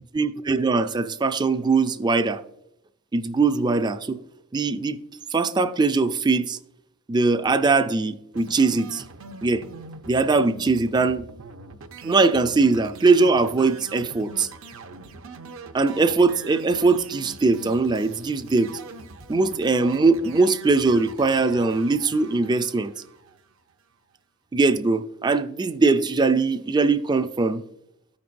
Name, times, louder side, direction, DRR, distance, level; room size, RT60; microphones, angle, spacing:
voice 1, 0.1-2.4 3.1-4.2 4.5-5.0 5.3-6.6 7.1-9.0 9.4-9.6 10.1-11.3 12.0-14.5 15.7-18.7 19.3-22.9 24.5-27.6, right 3 dB, 20° right, 0.3 m, -21 dB
sound 1, 8.3-23.7, right 3 dB, 70° right, 0.6 m, -43 dB
13.5 x 5.3 x 2.5 m
head